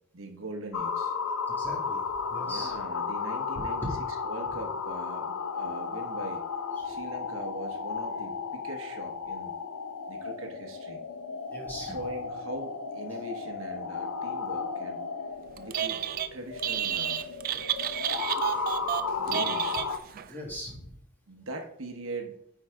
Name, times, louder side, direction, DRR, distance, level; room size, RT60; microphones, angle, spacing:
voice 1, 0.1-1.1 2.4-3.9 4.2-6.4 6.8-9.6 10.1-11.0 11.9-15.0 15.6-16.0 16.3-17.3 19.2-19.8 21.3-22.4, right 1 dB, 60° right, 3 dB, 1.0 m, -41 dB
sound 1, 0.7-20.0, left 5 dB, 85° left, 0.7 m, -34 dB
voice 2, 1.5-2.0 2.3-2.7 3.8-3.9 6.8-6.9 11.5-12.0 20.3-20.9, equal, 10° left, -3 dB, 1.9 m, -38 dB
Telephone, 15.6-16.3 16.6-20.3, right 10 dB, 40° right, 0.3 m, -31 dB
9.5 x 4.5 x 3.6 m, 0.71 s
head